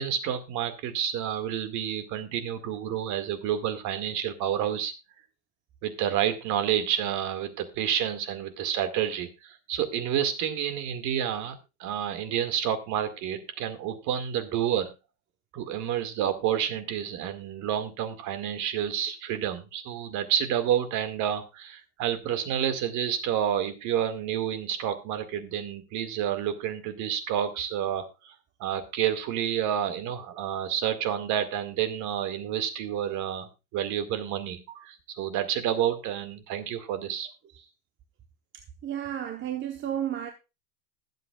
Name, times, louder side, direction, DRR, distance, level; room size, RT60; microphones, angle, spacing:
voice 1, 0.0-4.9 5.8-14.9 15.5-28.3 28.6-37.3, right 10 dB, 40° right, 2.1 m, -29 dB
voice 2, 38.8-40.3, right 10 dB, 25° right, 1.1 m, -32 dB
20.5 x 7.8 x 2.4 m
hypercardioid pair, 115°, 44 cm